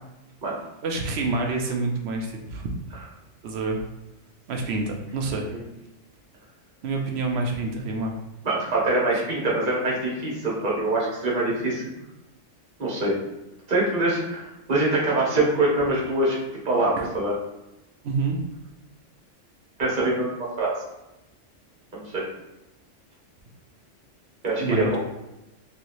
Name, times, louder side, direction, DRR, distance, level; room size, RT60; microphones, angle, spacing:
voice 1, 0.8-2.7 3.4-3.8 4.5-5.5 6.8-8.1 17.0-17.1 18.0-18.4 24.6-25.0, right 3 dB, 65° right, 2 dB, 0.8 m, -27 dB
voice 2, 8.4-11.8 12.8-13.2 13.7-16.4 16.6-17.3 19.8-20.7 21.9-22.2 24.4-25.0, right 2 dB, 45° right, -5 dB, 1.2 m, -24 dB
3.2 x 3.0 x 2.6 m, 0.94 s
omnidirectional pair, 1.2 m